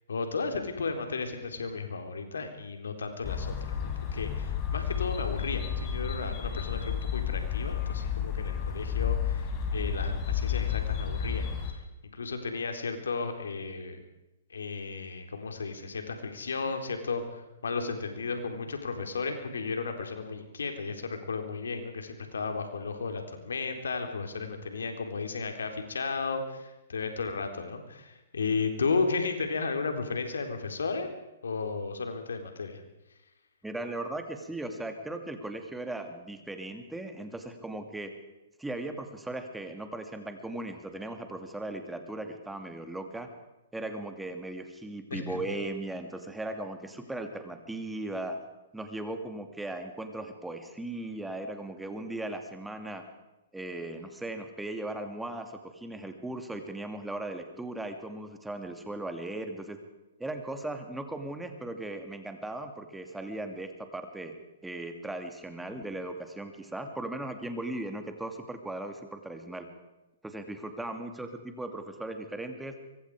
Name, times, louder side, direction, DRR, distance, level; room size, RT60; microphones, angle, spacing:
voice 1, 0.1-11.8 12.1-14.0 14.5-31.1 31.4-32.8 45.1-45.4, left 4 dB, 75° left, 5 dB, 3.9 m, -34 dB
sound 1, 3.2-11.7, left 8 dB, 30° left, 4.2 m, -31 dB
voice 2, 33.6-38.1 38.6-43.3 43.7-48.4 48.7-53.0 53.5-59.8 60.2-64.3 64.6-69.7 70.2-72.8, right 2 dB, 5° right, 6 dB, 2.5 m, -38 dB
24.5 x 23.5 x 5.0 m, 0.97 s
hypercardioid pair, 125°, 0 cm